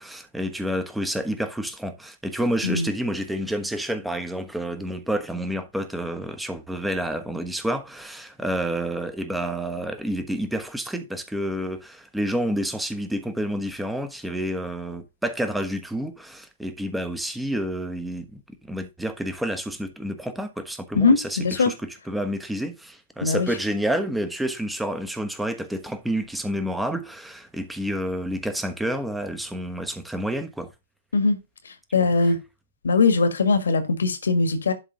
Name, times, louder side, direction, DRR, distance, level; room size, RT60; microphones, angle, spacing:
voice 1, 0.0-30.7 31.9-32.1, right 1 dB, 5° right, 1.1 m, -29 dB
voice 2, 20.9-21.7 23.2-23.5 31.1-31.4 31.9-32.4 32.8-34.7, left 4 dB, 75° left, 1.7 m, -20 dB
11.0 x 3.8 x 3.8 m
hypercardioid pair, 120°, 0 cm